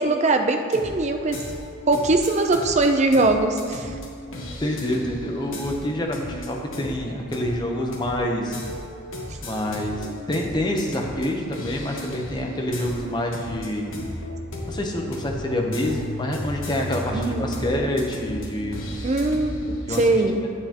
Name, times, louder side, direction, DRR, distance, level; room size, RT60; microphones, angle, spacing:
voice 1, 0.0-1.4 1.9-3.9 17.1-17.5 19.0-19.5 20.0-20.4, right 2 dB, 35° right, 5 dB, 0.5 m, -21 dB
sound 1, 0.6-20.1, left 1 dB, 70° left, 1.3 m, -35 dB
voice 2, 4.6-8.6 9.4-14.0 14.6-18.9 19.8-20.2, left 1 dB, 20° left, 1 dB, 0.8 m, -27 dB
9.6 x 7.8 x 2.9 m, 2.2 s
head